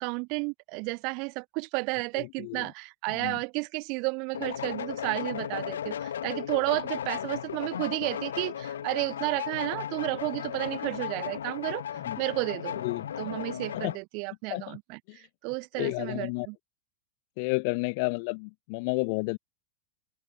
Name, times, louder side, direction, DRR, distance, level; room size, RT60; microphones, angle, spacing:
voice 1, 0.0-11.8 12.2-12.8 13.2-16.6, right 32 dB, 45° right, 0.9 m, -32 dB
voice 2, 2.2-2.7 3.1-3.4 11.9-12.2 12.7-13.4 13.7-13.9 14.5-14.8 15.1-15.2 15.7-16.5 17.4-19.4, left 32 dB, 45° left, 0.3 m, -32 dB
sound 1, 4.3-14.0, left 9 dB, 65° left, 2.2 m, -35 dB
open air
figure-of-eight pair, 90°, 0 cm